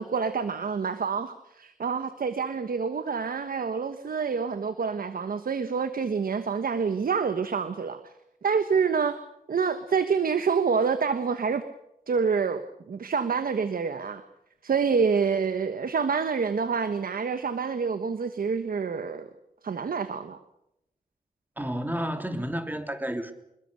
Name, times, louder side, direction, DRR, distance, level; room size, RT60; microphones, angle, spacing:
voice 1, 0.0-8.1 8.4-9.2 9.5-11.6 12.1-14.2 14.6-19.3 19.6-20.4, right 5 dB, 85° right, 10 dB, 1.2 m, -27 dB
voice 2, 21.6-23.3, equal, 10° right, 6 dB, 3.0 m, -31 dB
27.0 x 21.5 x 6.5 m, 0.84 s
wide cardioid pair, 90°, 15 cm